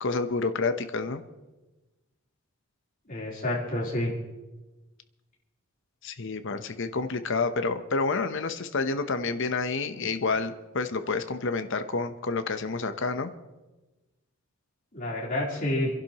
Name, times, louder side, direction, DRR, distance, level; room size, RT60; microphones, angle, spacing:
voice 1, 0.0-1.2 6.0-13.3, left 4 dB, 65° left, 9 dB, 0.9 m, -29 dB
voice 2, 3.1-4.1 14.9-15.9, left 1 dB, 40° left, -5 dB, 3.7 m, -29 dB
28.0 x 11.5 x 3.0 m, 1.1 s
head